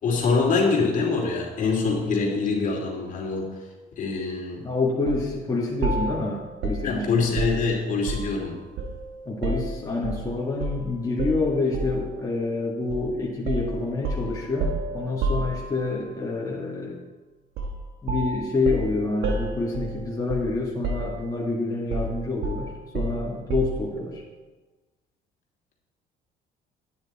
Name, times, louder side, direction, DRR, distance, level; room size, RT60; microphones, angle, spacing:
voice 1, 0.0-3.5 4.0-4.7 6.8-8.5, left 4 dB, 50° left, -1 dB, 2.7 m, -24 dB
voice 2, 4.6-7.2 9.3-17.0 18.0-24.2, left 3 dB, 20° left, -5 dB, 1.9 m, -27 dB
sound 1, 5.1-5.3 5.8-8.4 8.8-10.2 10.6-10.8 11.2-12.1 12.9-13.1 13.5-16.0 17.6-17.8 18.1-20.6 20.8-21.5 21.9-23.9, right 2 dB, 80° right, 1.4 m, -30 dB
9.6 x 9.4 x 4.3 m, 1.2 s
cardioid pair, 110°, 17 cm